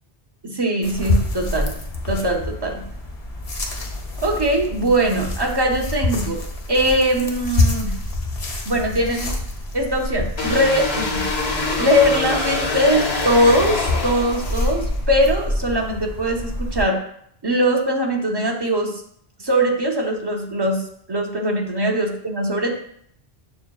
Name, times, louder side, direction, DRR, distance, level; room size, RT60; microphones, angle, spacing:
voice 1, 0.4-1.7 2.1-2.8 4.2-6.4 6.7-7.9 8.7-9.4 9.7-17.0 17.4-19.0 19.4-20.8 21.1-22.8, equal, 40° right, 1 dB, 0.3 m, -21 dB
sound 1, 0.8-16.8, left 1 dB, 45° left, 0.5 m, -27 dB
sound 2, 10.4-14.9, left 3 dB, 80° left, 1.0 m, -25 dB
6.8 x 2.5 x 2.2 m, 0.67 s
omnidirectional pair, 1.1 m